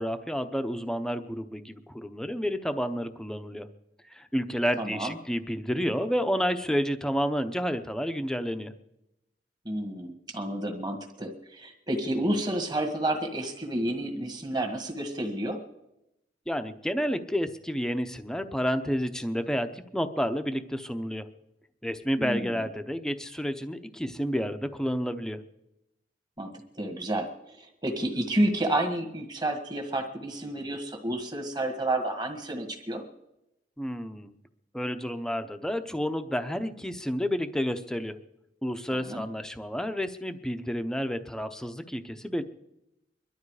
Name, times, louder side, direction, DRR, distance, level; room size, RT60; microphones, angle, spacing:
voice 1, 0.0-3.7 4.1-8.7 16.5-21.3 21.8-25.4 33.8-34.3 34.7-38.2 38.6-42.4, equal, 5° left, 8 dB, 0.7 m, -30 dB
voice 2, 4.8-5.1 9.7-15.6 22.2-22.6 26.4-33.0 38.9-39.2, right 1 dB, 25° right, 4 dB, 1.8 m, -30 dB
22.0 x 12.0 x 4.9 m, 0.87 s
head